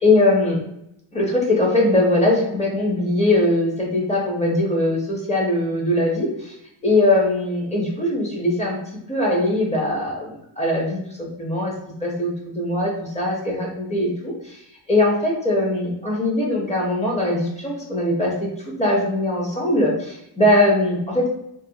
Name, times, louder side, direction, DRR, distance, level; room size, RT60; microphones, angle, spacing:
voice 1, 0.0-0.6 1.1-6.3 6.8-8.8 9.1-10.3 10.6-11.7 12.0-14.3 14.9-18.5 18.8-21.3, left 1 dB, 15° left, -3 dB, 0.5 m, -21 dB
2.4 x 2.2 x 2.7 m, 0.81 s
cardioid pair, 160°, 46 cm